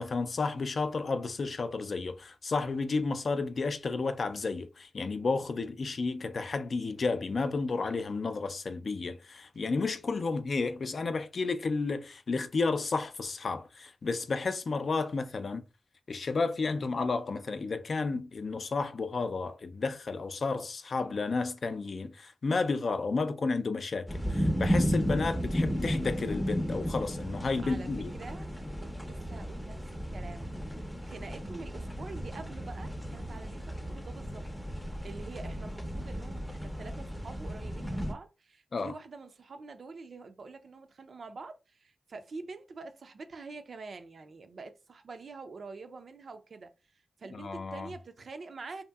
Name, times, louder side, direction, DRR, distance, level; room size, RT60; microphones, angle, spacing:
voice 1, 0.0-15.6 16.1-28.1 38.7-38.9 47.3-47.9, left 4 dB, 60° left, 0.4 m, -32 dB
sound 1, 24.1-38.1, equal, 5° left, 0.5 m, -34 dB
voice 2, 27.6-28.5 28.8-34.4 34.8-48.8, right 4 dB, 65° right, 0.4 m, -46 dB
2.8 x 2.6 x 2.3 m
cardioid pair, 60°, 0 cm